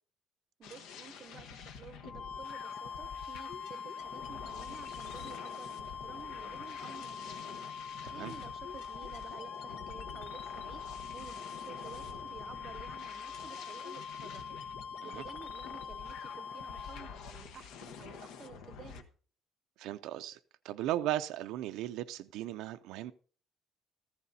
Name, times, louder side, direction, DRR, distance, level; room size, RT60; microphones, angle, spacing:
sound 1, 0.6-19.0, left 6 dB, 90° left, 1.1 m, -48 dB
voice 1, 0.6-7.6 8.1-10.8 11.1-14.6 15.0-19.1, right 7 dB, 35° right, 0.6 m, -52 dB
sound 2, 2.0-17.3, left 6 dB, 65° left, 1.3 m, -44 dB
voice 2, 19.8-20.4 20.6-23.1, right 13 dB, 80° right, 0.4 m, -36 dB
14.5 x 14.0 x 2.7 m
cardioid pair, 165°, 0 cm